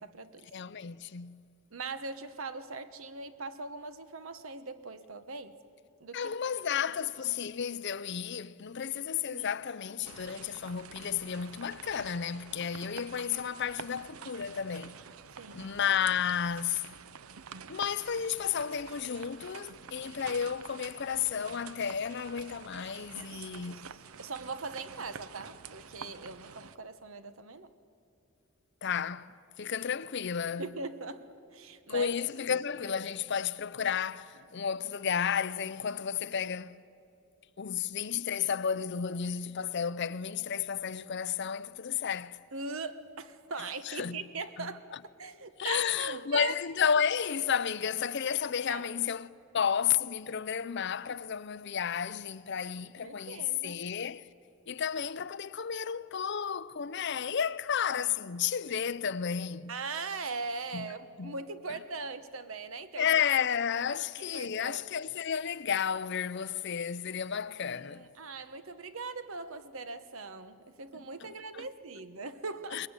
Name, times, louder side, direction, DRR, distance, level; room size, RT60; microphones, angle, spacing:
voice 1, 0.0-0.5 1.7-5.6 6.0-6.3 9.3-9.5 15.4-15.7 23.1-23.8 24.2-27.7 30.6-32.1 32.5-32.6 42.5-44.8 45.2-46.5 48.7-48.9 52.8-53.8 59.7-63.1 64.3-64.9 67.7-72.9, right 4 dB, 75° right, 1.2 m, -41 dB
voice 2, 0.5-1.4 6.1-15.0 15.5-16.8 17.7-23.9 28.8-30.7 31.9-36.8 37.6-42.4 43.8-44.2 44.6-44.7 45.6-54.2 54.7-59.7 60.7-60.9 61.2-61.3 63.0-68.1 71.2-71.7 72.7-72.9, left 7 dB, 55° left, 0.6 m, -32 dB
sound 1, 10.0-26.8, right 6 dB, 90° right, 0.7 m, -48 dB
22.5 x 21.0 x 9.7 m
head